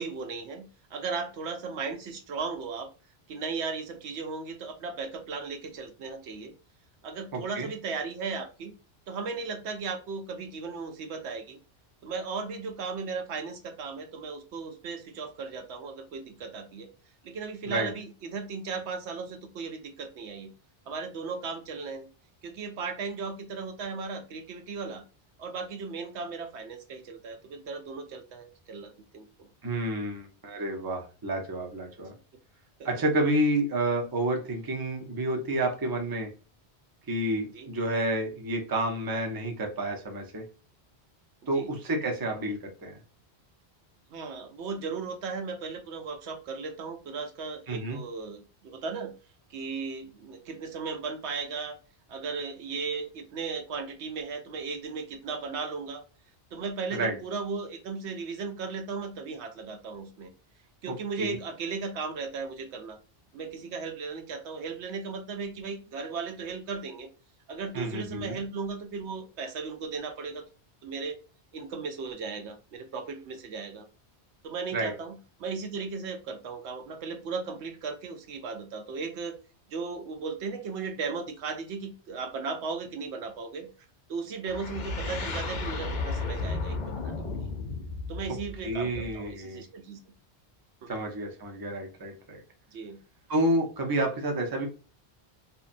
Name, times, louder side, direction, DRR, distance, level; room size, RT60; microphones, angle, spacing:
voice 1, 0.0-2.9 3.3-6.5 7.0-8.7 9.1-11.6 12.0-16.9 17.2-20.5 20.9-22.1 22.4-25.0 25.4-29.5 32.8-32.9 37.5-37.7 41.5-41.7 44.1-49.1 49.5-51.8 52.1-56.0 56.5-60.3 60.8-63.0 63.3-67.1 67.5-70.4 70.8-71.2 71.5-73.9 74.4-79.4 79.7-83.7 84.1-87.2 88.1-90.0 90.8-90.9 92.7-93.0, right 4 dB, 85° right, 6 dB, 0.9 m, -36 dB
voice 2, 7.3-7.7 17.7-17.9 29.6-32.1 32.8-36.3 37.1-40.4 41.5-43.0 47.7-48.0 56.9-57.2 60.9-61.4 67.7-68.4 74.7-74.9 88.6-89.7 90.9-92.4 93.3-94.7, right 1 dB, 25° right, 2 dB, 0.5 m, -29 dB
sound 1, 84.5-89.3, left 3 dB, 55° left, 0.6 m, -34 dB
2.6 x 2.2 x 2.4 m, 0.35 s
omnidirectional pair, 1.1 m